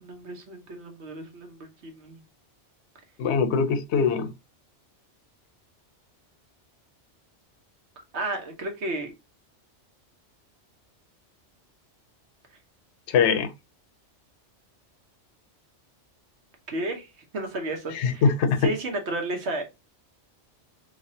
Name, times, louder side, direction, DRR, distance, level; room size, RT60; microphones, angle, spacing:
voice 1, 0.0-2.2 8.1-9.1 16.7-18.3 18.6-19.6, right 2 dB, 65° right, 1.2 m, -32 dB
voice 2, 3.2-4.3 13.1-13.5 17.9-18.6, left 5 dB, 70° left, 0.9 m, -22 dB
3.5 x 3.3 x 2.6 m
omnidirectional pair, 1.2 m